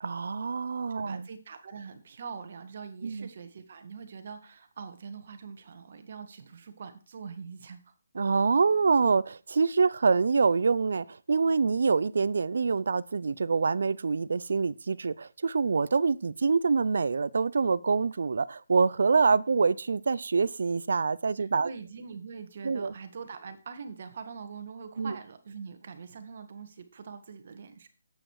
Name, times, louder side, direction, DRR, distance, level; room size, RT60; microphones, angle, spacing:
voice 1, 0.0-1.3 3.0-3.3 8.1-21.7 22.6-22.9 25.0-25.1, right 4 dB, 65° right, 0.6 m, -26 dB
voice 2, 0.9-7.9 21.4-27.9, right 5 dB, 50° right, 1.7 m, -43 dB
8.9 x 8.5 x 4.8 m
hypercardioid pair, 160°, 0 cm